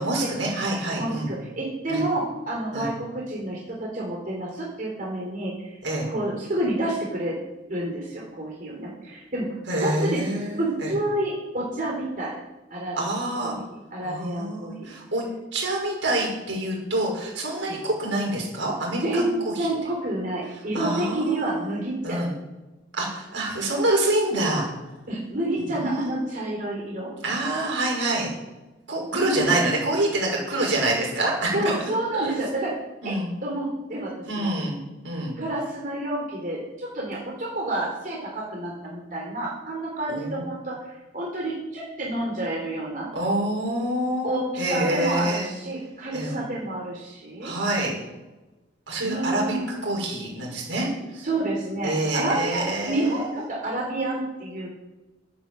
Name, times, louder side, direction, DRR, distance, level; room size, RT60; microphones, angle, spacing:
voice 1, 0.0-1.3 1.9-2.0 2.7-2.9 5.8-6.1 9.7-10.9 12.9-13.6 14.0-15.2 15.5-19.7 20.7-21.7 22.0-22.3 22.9-24.7 25.7-26.2 27.2-28.3 28.9-31.6 32.2-32.3 33.0-33.3 34.2-34.8 35.0-35.4 40.1-40.4 43.1-45.5 46.1-46.3 47.4-48.0 48.9-49.6 49.8-50.9 51.8-53.3, right 1 dB, 80° right, -2 dB, 6.2 m, -26 dB
voice 2, 1.0-5.8 6.1-7.3 7.7-10.2 10.6-12.4 12.7-13.0 13.4-13.6 13.9-14.9 17.7-17.8 19.0-22.2 25.1-27.1 29.1-29.5 31.5-32.8 33.0-34.5 35.4-43.1 44.2-47.5 49.0-49.7 51.2-54.7, right 1 dB, 45° right, -3 dB, 3.7 m, -29 dB
12.5 x 10.0 x 7.8 m, 1.1 s
head